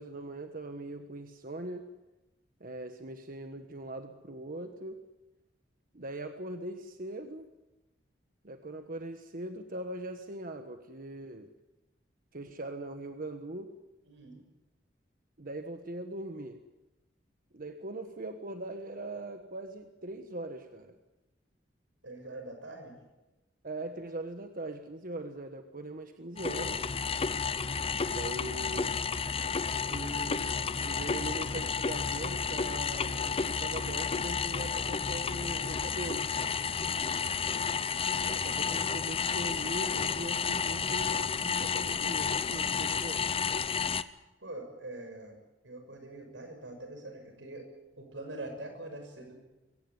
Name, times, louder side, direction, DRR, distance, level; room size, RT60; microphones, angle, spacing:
voice 1, 0.0-1.9 2.6-5.0 5.9-7.5 8.4-11.5 12.3-13.7 15.4-16.6 17.5-21.0 23.6-26.8 28.1-29.0 29.8-36.3 38.2-43.2, right 2 dB, 50° right, 7 dB, 1.4 m, -41 dB
voice 2, 14.0-14.4 22.0-23.0 36.7-37.1 44.4-47.7 48.0-49.3, right 2 dB, 90° right, 5 dB, 6.4 m, -44 dB
sound 1, 26.4-44.0, left 5 dB, 30° left, 0.8 m, -31 dB
23.0 x 17.5 x 9.6 m, 1.0 s
head